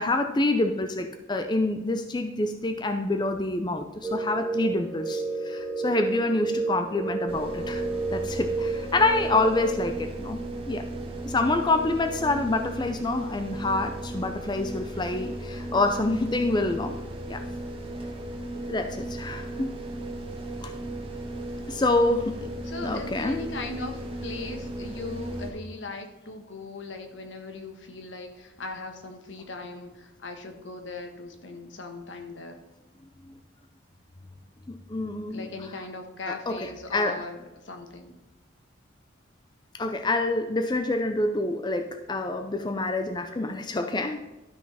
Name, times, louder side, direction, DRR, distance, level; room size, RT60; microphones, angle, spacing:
voice 1, 0.0-10.8 11.3-16.9 17.3-17.4 18.7-19.8 20.6-20.7 21.7-22.5 22.8-23.4 34.7-35.5 36.3-37.2 39.7-44.2, left 2 dB, 20° left, 6 dB, 0.5 m, -27 dB
sound 1, 4.0-9.9, right 3 dB, 10° right, 1.0 m, -31 dB
sound 2, 7.3-25.5, right 1 dB, 30° right, 1.4 m, -36 dB
voice 2, 22.6-32.6 35.3-37.4 37.6-38.2, left 3 dB, 70° left, 5 dB, 1.3 m, -38 dB
12.5 x 6.1 x 4.2 m, 1.0 s
head